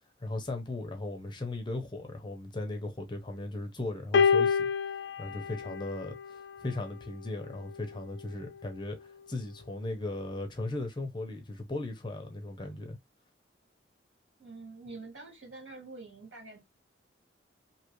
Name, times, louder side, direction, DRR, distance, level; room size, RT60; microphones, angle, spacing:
voice 1, 0.2-4.7 5.2-13.0, left 2 dB, 25° left, 0.6 m, -37 dB
sound 1, 4.1-6.6 7.6-7.8, left 6 dB, 75° left, 0.4 m, -28 dB
voice 2, 14.4-16.6, right 3 dB, 80° right, 2.1 m, -46 dB
2.8 x 2.4 x 3.0 m
head